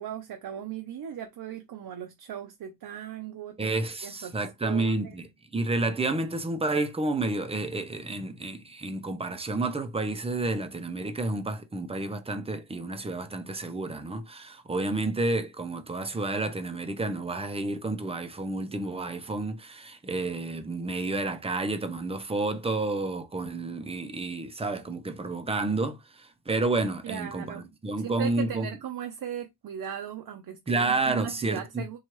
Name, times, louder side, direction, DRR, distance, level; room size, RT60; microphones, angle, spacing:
voice 1, 0.0-3.7 4.0-5.2 27.0-27.6 28.0-32.0, right 9 dB, 70° right, 0.6 m, -38 dB
voice 2, 3.6-28.7 30.7-31.8, right 2 dB, 15° right, 0.5 m, -30 dB
4.5 x 2.3 x 3.0 m
wide cardioid pair, 140°, 38 cm